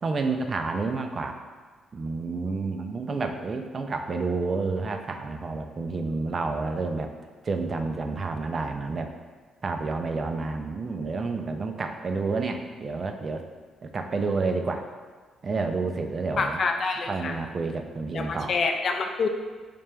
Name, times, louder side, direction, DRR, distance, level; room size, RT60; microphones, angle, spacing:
voice 1, 0.0-1.4 1.9-7.1 7.4-9.1 9.6-13.4 13.8-14.9 15.4-16.6 17.1-18.5, right 3 dB, 40° right, 5 dB, 0.3 m, -29 dB
voice 2, 16.4-17.4 18.1-19.3, left 4 dB, 50° left, 4 dB, 0.3 m, -27 dB
3.3 x 2.9 x 3.3 m, 1.4 s
cardioid pair, 90°, 0 cm